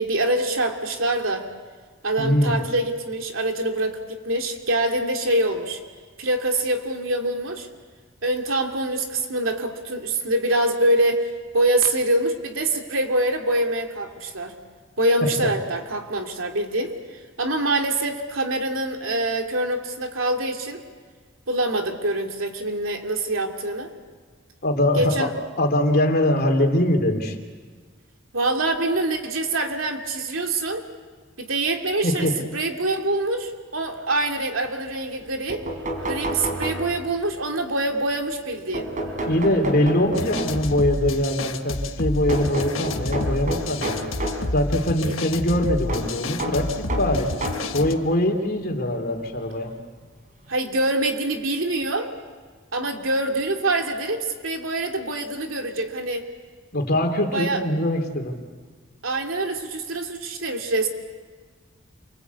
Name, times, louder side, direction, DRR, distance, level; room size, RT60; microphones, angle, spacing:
voice 1, 0.0-1.5 2.0-5.8 6.2-7.7 8.2-11.3 11.5-14.5 15.0-20.8 21.5-23.9 25.0-25.3 28.3-30.8 31.4-35.6 36.0-38.9 45.0-45.2 50.5-52.1 52.7-56.3 57.3-57.6 59.0-60.9, right 2 dB, 85° right, 3 dB, 2.8 m, -25 dB
voice 2, 2.2-2.5 15.2-15.3 24.6-25.3 25.6-27.4 32.0-32.4 39.2-44.0 44.5-47.3 47.7-49.7 56.7-58.3, left 1 dB, 50° left, 3 dB, 3.3 m, -22 dB
sound 1, 35.2-35.3 35.5-37.2 38.7-40.8 42.3-44.5 45.9-47.8 48.6-48.7 50.0-50.1 50.5-50.6, right 1 dB, 40° right, 4.1 m, -30 dB
sound 2, 40.2-47.9, left 2 dB, 80° left, 1.5 m, -30 dB
28.5 x 24.5 x 8.4 m, 1.5 s
head